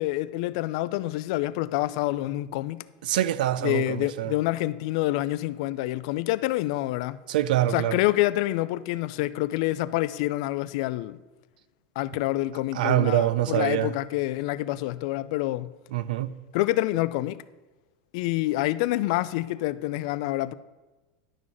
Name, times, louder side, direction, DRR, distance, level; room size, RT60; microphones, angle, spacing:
voice 1, 0.0-2.8 3.6-7.2 7.7-11.2 12.0-15.7 16.5-17.4 18.1-20.5, left 17 dB, 45° left, 0.3 m, -27 dB
voice 2, 3.0-4.3 7.3-8.0 12.7-13.9 15.9-16.3, right 13 dB, 75° right, 0.5 m, -25 dB
11.0 x 3.9 x 7.4 m
supercardioid pair, 180°, 5 cm